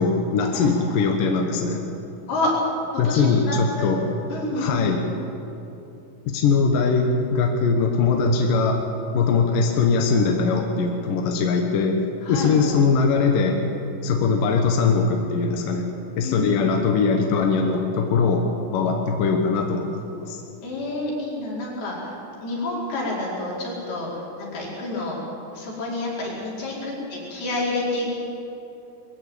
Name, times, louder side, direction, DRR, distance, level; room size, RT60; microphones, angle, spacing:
voice 1, 0.0-1.8 3.0-4.0 4.6-5.1 6.3-8.8 9.1-13.7 14.0-20.4, left 4 dB, 70° left, 3 dB, 2.8 m, -21 dB
voice 2, 3.1-3.9 4.3-4.9 12.2-12.5 16.2-16.7 20.6-22.1 22.4-24.1 24.4-25.2 25.5-28.1, left 2 dB, 85° left, -5 dB, 6.9 m, -28 dB
21.5 x 15.5 x 8.8 m, 2.9 s
omnidirectional pair, 4.3 m